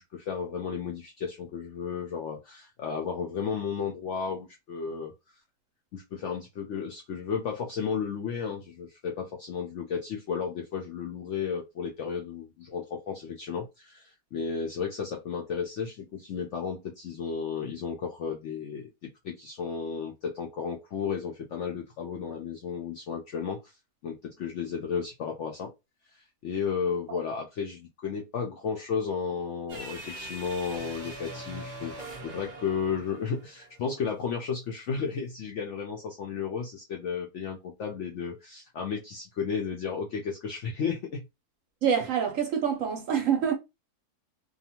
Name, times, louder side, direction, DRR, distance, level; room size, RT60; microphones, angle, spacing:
voice 1, 0.0-5.1 5.9-18.9 19.2-23.6 24.0-25.7 26.1-41.2, left 6 dB, 70° left, 0.7 m, -33 dB
sound 1, 29.7-34.1, right 1 dB, 45° right, 0.5 m, -42 dB
voice 2, 41.8-43.5, right 8 dB, 65° right, 0.9 m, -26 dB
2.6 x 2.3 x 2.8 m
omnidirectional pair, 1.7 m